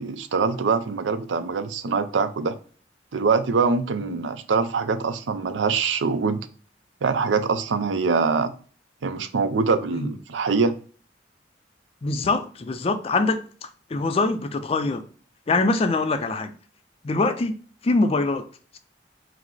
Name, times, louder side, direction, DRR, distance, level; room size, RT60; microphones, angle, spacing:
voice 1, 0.0-2.6 3.1-6.4 7.0-8.5 9.0-10.8, right 4 dB, 90° right, 0.5 m, -23 dB
voice 2, 12.0-15.1 15.5-16.5 17.0-17.6 17.8-18.5, left 3 dB, 30° left, 0.4 m, -24 dB
4.9 x 2.0 x 3.9 m
head